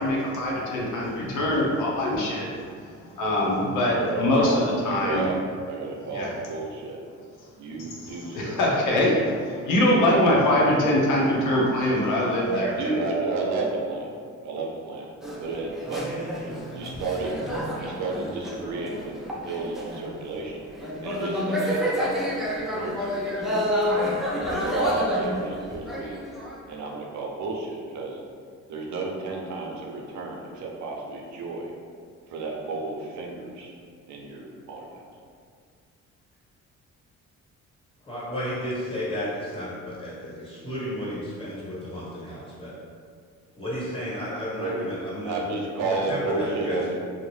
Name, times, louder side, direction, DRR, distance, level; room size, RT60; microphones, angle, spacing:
voice 1, 0.0-2.5 2.8-5.3 6.1-6.3 7.8-12.9, left 1 dB, 85° left, -4 dB, 0.7 m, -23 dB
voice 2, 3.9-4.6 5.0-7.0 7.6-9.1 10.1-10.3 12.5-14.1 14.4-15.1 15.4-16.1 16.3-16.5 16.7-17.4 17.8-19.1 19.4-20.6 21.0-22.2 22.7-23.9 24.3-26.2 26.7-28.2 28.7-31.7 32.3-33.7 34.1-35.0 44.6-47.1, right 3 dB, 70° right, -1 dB, 0.5 m, -32 dB
sound 1, 15.2-20.2 20.7-26.7, equal, ahead, 0.4 m, -29 dB
voice 3, 38.0-42.7 43.6-45.4 45.8-46.8, equal, 20° left, -8 dB, 1.1 m, -32 dB
2.6 x 2.0 x 3.1 m, 2.1 s
cardioid pair, 90°, 30 cm